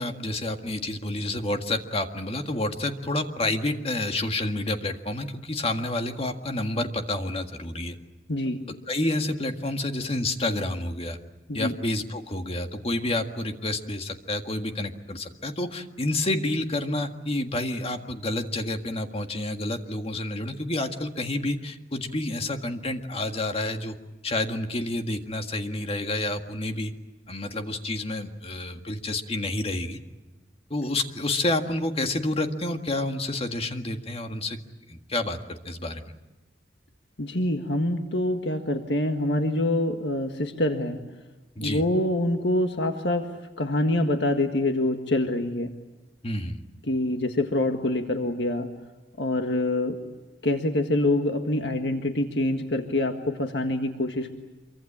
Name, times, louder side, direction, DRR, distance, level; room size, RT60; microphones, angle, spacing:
voice 1, 0.0-8.0 8.7-11.2 11.5-24.0 24.2-26.9 27.3-30.0 30.7-34.6 34.9-36.1 41.6-41.8 46.2-46.6, left 2 dB, 35° left, 5 dB, 1.8 m, -29 dB
voice 2, 8.3-8.6 11.5-11.7 37.2-41.0 41.6-43.3 43.6-45.7 46.9-48.7 49.2-50.0 50.4-54.3, left 1 dB, 75° left, 5 dB, 1.8 m, -25 dB
26.0 x 24.0 x 8.7 m, 1.1 s
head